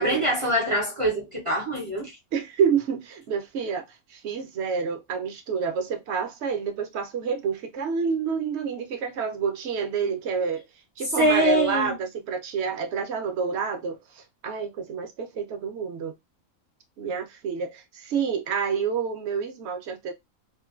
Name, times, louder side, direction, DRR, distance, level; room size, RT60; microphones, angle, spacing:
voice 1, 0.0-2.1 11.2-12.0, equal, 40° right, 0.4 m, -23 dB
voice 2, 2.3-3.8 4.1-10.6 11.0-16.1 17.0-20.1, right 6 dB, 65° right, 0.8 m, -28 dB
3.0 x 2.1 x 2.3 m
omnidirectional pair, 1.4 m